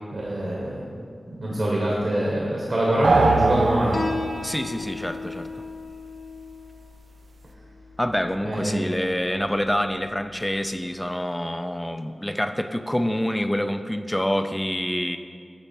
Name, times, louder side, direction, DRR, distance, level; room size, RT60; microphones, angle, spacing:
voice 1, 0.1-1.0 1.4-4.0 8.4-8.9, right 1 dB, 60° right, -4 dB, 1.3 m, -24 dB
sound 1, 3.0-4.5, right 3 dB, 75° right, 0.4 m, -22 dB
Piano, 3.9-11.0, left 3 dB, 65° left, 0.6 m, -37 dB
voice 2, 4.4-5.5 8.0-15.2, equal, 10° left, 9 dB, 0.4 m, -26 dB
8.8 x 4.1 x 4.4 m, 2.1 s
cardioid pair, 40°, 0 cm